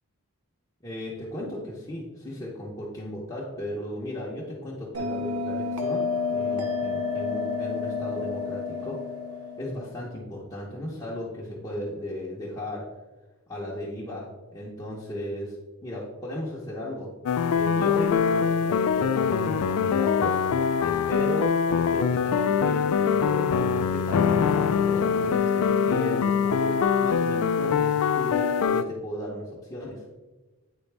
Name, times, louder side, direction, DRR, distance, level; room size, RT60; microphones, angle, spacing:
voice 1, 0.8-9.0 9.6-12.9 13.5-15.5 15.8-17.1 17.5-20.4 20.8-26.8 27.0-30.0, left 1 dB, 20° left, -7 dB, 0.8 m, -35 dB
Bell, 4.9-10.0, left 4 dB, 85° right, 0.7 m, -30 dB
sound 1, 17.3-28.8, left 6 dB, 85° left, 0.3 m, -23 dB
9.0 x 4.0 x 3.3 m, 1.2 s
head